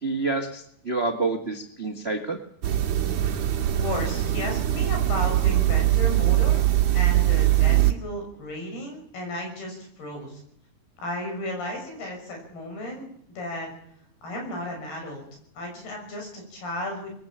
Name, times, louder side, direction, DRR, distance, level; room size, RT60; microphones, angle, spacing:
voice 1, 0.0-2.4, right 3 dB, 35° right, 4 dB, 0.9 m, -28 dB
sound 1, 2.6-7.9, right 13 dB, 55° right, 2.4 m, -22 dB
voice 2, 3.8-6.6 6.9-10.4 11.0-13.7 14.2-15.2 15.6-17.1, left 1 dB, 75° left, 2 dB, 8.6 m, -34 dB
24.0 x 21.5 x 8.7 m, 0.71 s
omnidirectional pair, 4.5 m